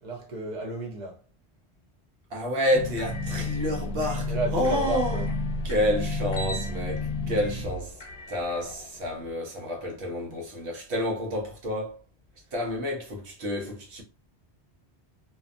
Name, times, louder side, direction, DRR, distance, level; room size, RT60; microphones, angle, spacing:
voice 1, 0.0-1.2 4.3-5.3, right 2 dB, 45° right, 0.8 m, -33 dB
voice 2, 2.3-5.3 5.6-8.0 8.3-12.0 12.5-14.0, left 1 dB, 80° right, 1.0 m, -29 dB
sound 1, 2.7-9.3, left 2 dB, 55° left, 0.7 m, -31 dB
2.6 x 2.2 x 2.4 m
omnidirectional pair, 1.1 m